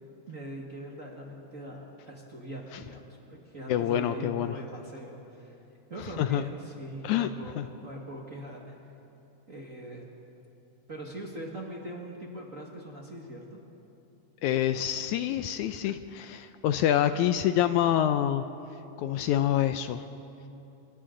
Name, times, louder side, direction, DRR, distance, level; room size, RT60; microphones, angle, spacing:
voice 1, 0.3-5.5 5.9-8.7 9.5-10.1 10.9-13.6, right 1 dB, 35° right, -2 dB, 1.5 m, -41 dB
voice 2, 3.7-4.6 6.2-6.5 7.0-7.3 7.6-7.7 14.4-18.4 19.0-20.1, left 11 dB, 80° left, 10 dB, 1.9 m, -26 dB
28.5 x 24.0 x 3.8 m, 3.0 s
omnidirectional pair, 3.7 m